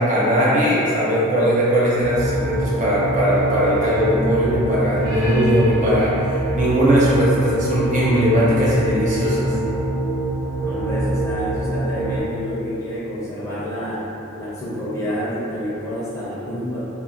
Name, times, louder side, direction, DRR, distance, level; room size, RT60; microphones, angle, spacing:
voice 1, 0.0-9.5, equal, 35° right, -7 dB, 0.6 m, -19 dB
sound 1, 2.0-12.2, right 2 dB, 60° right, 0.9 m, -25 dB
voice 2, 10.6-14.0 14.3-16.9, equal, 15° left, -10 dB, 0.5 m, -28 dB
2.5 x 2.1 x 2.8 m, 2.9 s
head